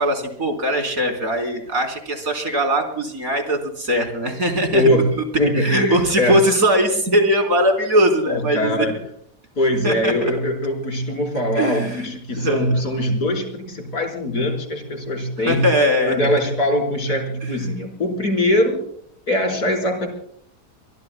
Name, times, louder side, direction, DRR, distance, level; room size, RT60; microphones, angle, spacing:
voice 1, 0.0-5.0 5.5-8.9 9.8-10.1 11.6-12.7 15.4-16.4 17.4-17.5, equal, 60° right, 3 dB, 4.5 m, -20 dB
voice 2, 4.7-5.1 5.4-6.3 8.2-8.9 9.5-15.6 16.1-18.8 19.3-20.1, left 1 dB, 70° left, 1 dB, 5.1 m, -22 dB
24.5 x 23.0 x 2.3 m, 0.63 s
omnidirectional pair, 1.7 m